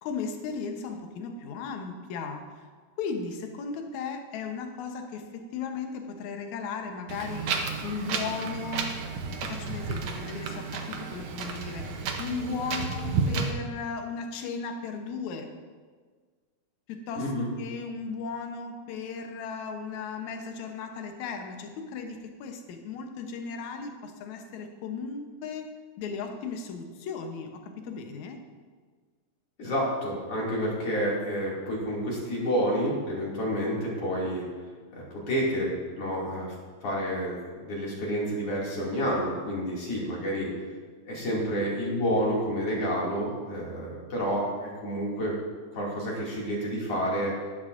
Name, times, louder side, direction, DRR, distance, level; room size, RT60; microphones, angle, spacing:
voice 1, 0.0-2.7 3.0-7.6 7.8-8.9 9.4-15.5 17.1-25.7 26.0-28.4, left 5 dB, 75° left, 4 dB, 2.2 m, -36 dB
Wind, 7.1-13.5, right 4 dB, 70° right, 1.5 m, -32 dB
voice 2, 17.2-17.5 29.6-34.4 34.9-36.6 36.8-40.5 41.0-45.4 45.7-47.3, equal, 50° left, -5 dB, 3.3 m, -29 dB
12.5 x 11.0 x 2.6 m, 1.5 s
omnidirectional pair, 3.5 m